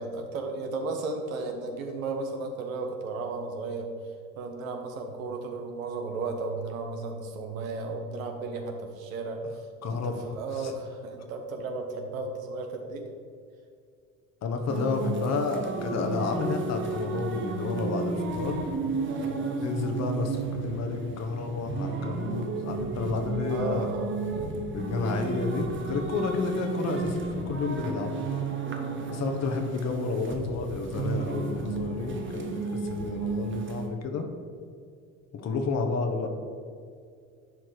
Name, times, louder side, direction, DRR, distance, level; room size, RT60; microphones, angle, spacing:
voice 1, 0.0-3.9 4.4-9.4 9.9-13.0 19.0-19.6 23.5-24.2 26.0-26.2 28.6-28.9, right 3 dB, 75° right, 4 dB, 1.3 m, -34 dB
voice 2, 9.8-10.1 10.6-10.7 14.4-18.7 19.6-23.9 24.7-28.1 29.1-34.3 35.3-36.3, left 4 dB, 40° left, 4 dB, 1.3 m, -31 dB
sound 1, 14.7-33.9, right 3 dB, 30° right, 1.2 m, -33 dB
11.0 x 4.5 x 4.9 m, 2.3 s
hypercardioid pair, 70°, 41 cm